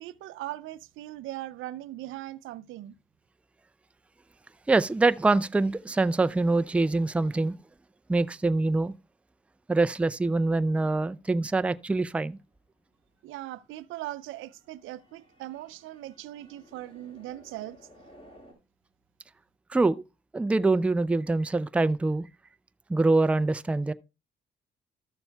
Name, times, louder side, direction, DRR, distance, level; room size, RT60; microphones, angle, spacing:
voice 1, 0.0-2.9 13.2-17.8, right 15 dB, 85° right, 0.5 m, -39 dB
voice 2, 4.7-7.6 8.1-8.9 9.7-12.4 19.7-20.0 20.3-22.2 22.9-23.9, right 3 dB, 5° right, 0.3 m, -24 dB
sound 1, 11.8-18.5, equal, 30° left, 4.3 m, -57 dB
13.5 x 7.0 x 2.2 m
cardioid pair, 90°, 20 cm